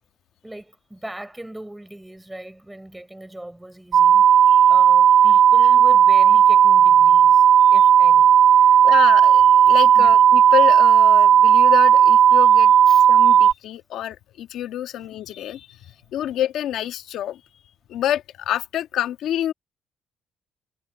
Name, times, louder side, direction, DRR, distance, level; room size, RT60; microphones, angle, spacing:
voice 1, 0.4-4.3 4.7-8.8 9.9-10.2 12.9-13.1 14.9-15.1, right 1 dB, 10° right, 4.3 m, -39 dB
sound 1, 3.9-13.5, right 9 dB, 60° right, 0.3 m, -13 dB
voice 2, 8.8-12.7 13.1-15.8 16.1-17.4 17.9-19.5, left 11 dB, 80° left, 1.6 m, -27 dB
cardioid pair, 90°, 0 cm